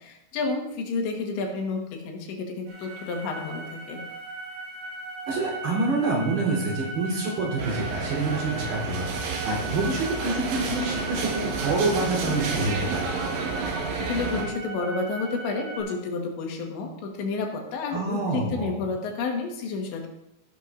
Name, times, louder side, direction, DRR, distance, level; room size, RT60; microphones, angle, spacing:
voice 1, 0.0-4.0 14.0-20.1, left 4 dB, 85° left, 2 dB, 3.8 m, -30 dB
sound 1, 2.7-15.8, right 2 dB, 55° right, 5.1 m, -38 dB
voice 2, 5.3-13.1 17.9-18.8, right 2 dB, 70° right, -4 dB, 5.6 m, -27 dB
sound 2, 7.6-14.4, right 4 dB, 90° right, 3.9 m, -31 dB
15.0 x 11.5 x 2.6 m, 0.83 s
omnidirectional pair, 5.0 m